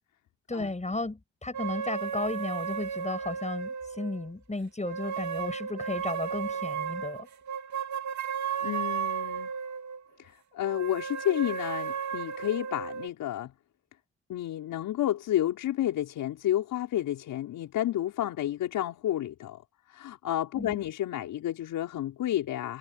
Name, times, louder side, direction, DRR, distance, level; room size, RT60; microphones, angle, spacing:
voice 1, 0.5-7.3 20.6-20.8, left 2 dB, 20° left, 7.9 m, -34 dB
sound 1, 1.5-4.3 4.8-10.0 10.6-13.1, right 7 dB, 60° right, 2.4 m, -34 dB
voice 2, 8.6-9.5 10.2-13.5 14.3-19.6 19.9-22.8, left 12 dB, 80° left, 5.5 m, -31 dB
supercardioid pair, 55°, 32 cm